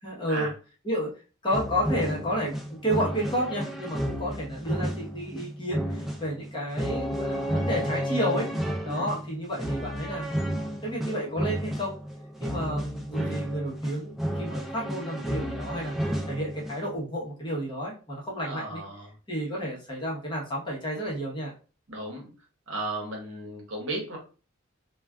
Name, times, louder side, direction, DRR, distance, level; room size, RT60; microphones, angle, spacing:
voice 1, 0.0-0.5 0.8-1.1 1.4-8.5 8.8-10.3 10.6-12.0 12.4-18.8 19.3-21.5, equal, 20° left, -5 dB, 0.9 m, -31 dB
sound 1, 1.5-16.9, equal, ahead, 0.4 m, -32 dB
voice 2, 8.8-9.1 18.4-19.1 21.9-22.3 22.7-24.2, right 2 dB, 60° right, -1 dB, 1.0 m, -35 dB
2.4 x 2.3 x 3.4 m, 0.36 s
head